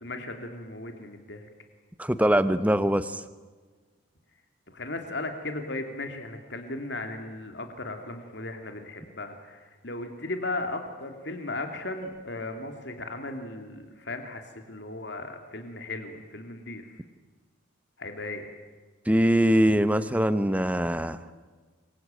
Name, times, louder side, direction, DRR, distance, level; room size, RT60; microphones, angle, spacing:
voice 1, 0.0-1.5 4.7-16.9 18.0-18.5, left 2 dB, 55° left, 5 dB, 2.9 m, -36 dB
voice 2, 2.0-3.2 19.1-21.3, equal, 5° right, 12 dB, 1.1 m, -23 dB
Keyboard (musical), 12.0-14.5, equal, 40° right, 3.7 m, -50 dB
27.0 x 23.0 x 9.1 m, 1.4 s
head